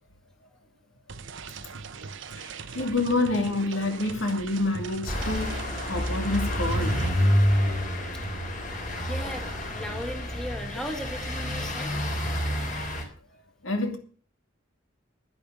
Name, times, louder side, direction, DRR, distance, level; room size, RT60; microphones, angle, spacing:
sound 1, 1.1-7.1, right 5 dB, 70° right, 0.9 m, -40 dB
voice 1, 2.7-7.0 13.6-14.0, left 2 dB, 80° left, 2.6 m, -27 dB
sound 2, 5.1-13.0, equal, 40° left, 3.7 m, -28 dB
voice 2, 9.0-11.9, equal, 5° left, 1.7 m, -37 dB
10.5 x 10.0 x 6.4 m
head